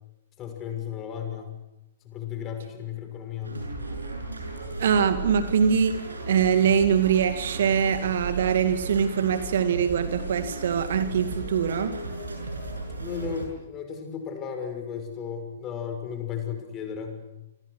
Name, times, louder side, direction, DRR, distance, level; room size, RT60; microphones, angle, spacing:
voice 1, 0.4-1.6 2.0-3.6 13.0-17.2, left 7 dB, 25° left, 6 dB, 6.0 m, -34 dB
sound 1, 3.4-13.5, right 2 dB, 75° right, 7.0 m, -35 dB
voice 2, 4.8-6.0 6.3-11.9, right 7 dB, 55° right, 9 dB, 2.3 m, -23 dB
28.0 x 25.5 x 6.4 m, 0.92 s
figure-of-eight pair, 115°, 0 cm